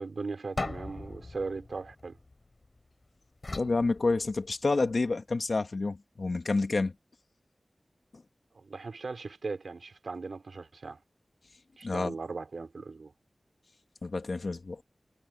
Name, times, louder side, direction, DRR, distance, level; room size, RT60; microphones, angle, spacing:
voice 1, 0.0-2.2 8.5-11.0 11.8-13.1, right 4 dB, 85° right, 3.4 m, -38 dB
sound 1, 0.6-2.8 3.4-4.8, left 2 dB, 45° left, 4.0 m, -40 dB
voice 2, 3.5-6.9 11.8-12.1 14.0-14.8, left 3 dB, 65° left, 2.4 m, -29 dB
wide cardioid pair, 80°, 0 cm